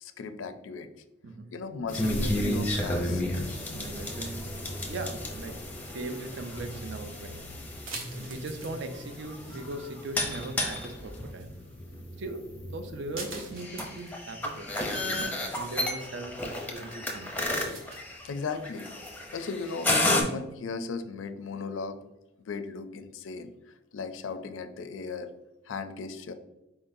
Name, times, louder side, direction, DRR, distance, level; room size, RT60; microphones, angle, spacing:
voice 1, 0.0-0.9 1.5-3.2 18.2-18.9 19.3-22.0 22.5-23.5 23.9-25.3 25.7-26.3, left 4 dB, 80° left, 9 dB, 0.4 m, -36 dB
voice 2, 1.2-1.5 3.7-7.4 8.1-11.6 12.2-17.5, right 2 dB, 65° right, 7 dB, 0.5 m, -40 dB
sound 1, 1.9-20.2, left 1 dB, 10° left, 0.6 m, -32 dB
sound 2, 4.7-19.4, right 2 dB, 85° right, 1.0 m, -48 dB
4.6 x 3.8 x 2.6 m, 0.95 s
head